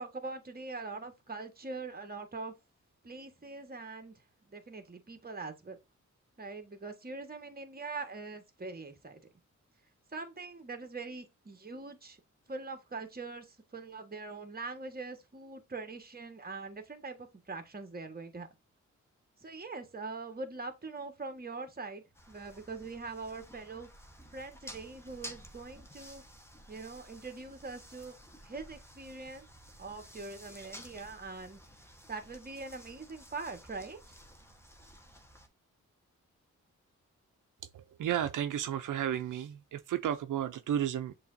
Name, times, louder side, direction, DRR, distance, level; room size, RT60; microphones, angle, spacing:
voice 1, 0.0-2.5 3.0-4.2 4.5-5.8 6.4-9.2 10.1-12.2 12.5-18.5 19.4-23.9 24.3-26.2 26.7-28.2 28.4-29.5 29.8-31.6 32.1-34.0, right 3 dB, 30° right, 1.4 m, -43 dB
sound 1, 22.1-35.5, equal, 10° left, 1.2 m, -53 dB
voice 2, 37.7-41.1, right 10 dB, 85° right, 0.5 m, -33 dB
6.8 x 2.9 x 2.6 m
cardioid pair, 70°, 30 cm